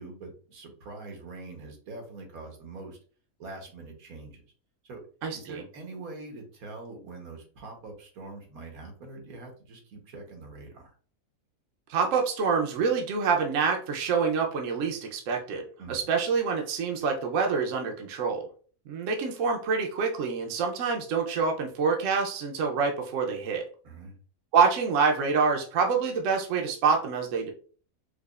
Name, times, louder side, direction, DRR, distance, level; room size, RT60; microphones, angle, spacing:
voice 1, 0.0-3.0 3.4-4.4 4.8-5.0 5.3-10.9 15.8-16.0 23.8-24.1, right 3 dB, 90° right, 2 dB, 1.4 m, -43 dB
voice 2, 5.2-5.6 11.9-15.6 15.9-18.5 18.9-23.7 24.5-27.5, right 5 dB, 70° right, 2 dB, 1.0 m, -26 dB
4.8 x 2.3 x 2.3 m, 0.41 s
omnidirectional pair, 1.5 m